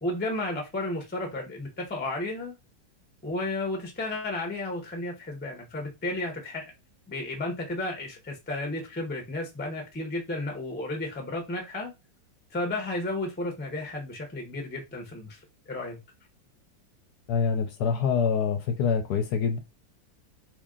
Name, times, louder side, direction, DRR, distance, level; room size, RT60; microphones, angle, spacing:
voice 1, 0.0-2.5 3.2-6.6 7.1-11.9 12.5-15.4 15.7-16.0, left 2 dB, 15° left, 0.4 m, -33 dB
voice 2, 17.3-19.6, left 6 dB, 70° left, 1.0 m, -25 dB
3.0 x 2.7 x 3.6 m
omnidirectional pair, 2.0 m